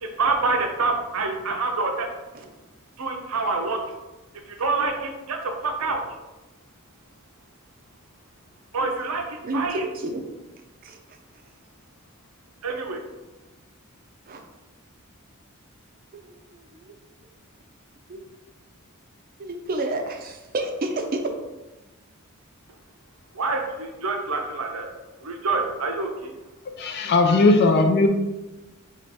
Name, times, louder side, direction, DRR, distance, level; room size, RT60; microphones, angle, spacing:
voice 1, 0.0-2.1 3.0-3.8 4.6-5.4 5.6-6.0 8.7-9.9 12.6-13.0 23.3-24.9 25.2-26.3, right 3 dB, 80° right, 3 dB, 0.7 m, -26 dB
voice 2, 9.4-10.2 10.8-11.0 14.3-14.4 16.1-16.9 18.1-18.2 19.4-21.2, right 2 dB, 40° right, 4 dB, 0.5 m, -30 dB
voice 3, 26.7-28.1, left 3 dB, 50° left, 5 dB, 0.4 m, -18 dB
3.0 x 2.9 x 4.6 m, 1.1 s
head